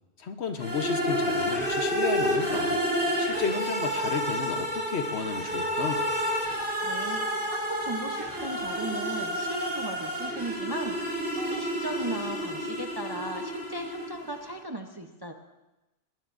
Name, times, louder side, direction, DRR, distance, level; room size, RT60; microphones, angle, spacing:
voice 1, 0.2-2.8 3.2-6.1, left 5 dB, 60° left, 7 dB, 1.1 m, -33 dB
sound 1, 0.6-14.4, equal, 10° right, 3.4 m, -30 dB
voice 2, 6.8-7.2 7.5-15.3, right 1 dB, 25° right, 4 dB, 0.6 m, -37 dB
20.0 x 19.5 x 2.6 m, 1.0 s
omnidirectional pair, 1.3 m